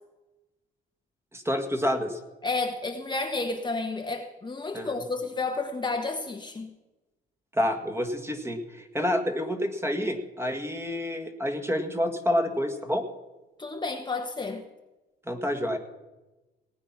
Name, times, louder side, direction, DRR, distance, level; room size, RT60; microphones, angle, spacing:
voice 1, 1.3-2.2 4.7-5.0 7.5-13.0 15.3-15.8, equal, 10° right, 5 dB, 1.8 m, -28 dB
voice 2, 2.4-6.7 13.6-14.6, left 3 dB, 20° left, 4 dB, 1.1 m, -31 dB
18.5 x 9.2 x 5.9 m, 1.1 s
cardioid pair, 90°, 20 cm